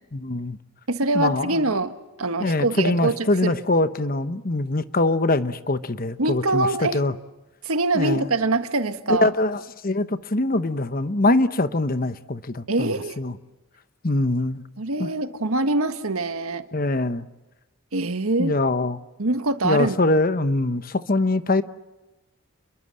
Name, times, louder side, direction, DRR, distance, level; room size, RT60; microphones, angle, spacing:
voice 1, 0.1-0.6 1.1-1.6 2.4-7.1 7.9-8.3 9.1-13.4 14.0-14.6 15.0-15.1 16.7-17.3 18.4-19.0 19.6-21.6, left 2 dB, 45° left, 1.0 m, -23 dB
voice 2, 0.9-3.5 6.2-7.0 7.6-9.3 12.7-13.2 14.8-16.6 17.9-18.5 19.2-20.0, right 2 dB, 85° right, 1.6 m, -24 dB
29.5 x 22.5 x 7.7 m
head